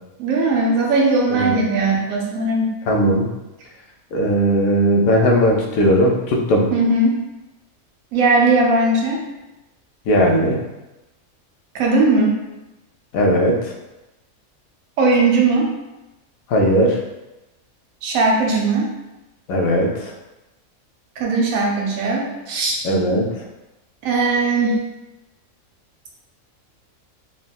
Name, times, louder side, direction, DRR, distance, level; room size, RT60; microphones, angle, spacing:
voice 1, 0.2-2.7 6.7-7.2 8.1-9.3 11.7-12.4 15.0-15.7 18.0-18.9 21.2-22.8 24.0-24.8, right 3 dB, 80° right, -1 dB, 1.0 m, -18 dB
voice 2, 2.9-3.3 4.1-6.6 10.1-10.6 13.1-13.7 16.5-17.0 19.5-20.1 22.8-23.3, equal, 85° left, 0 dB, 1.0 m, -17 dB
3.5 x 2.1 x 2.2 m, 0.98 s
omnidirectional pair, 1.4 m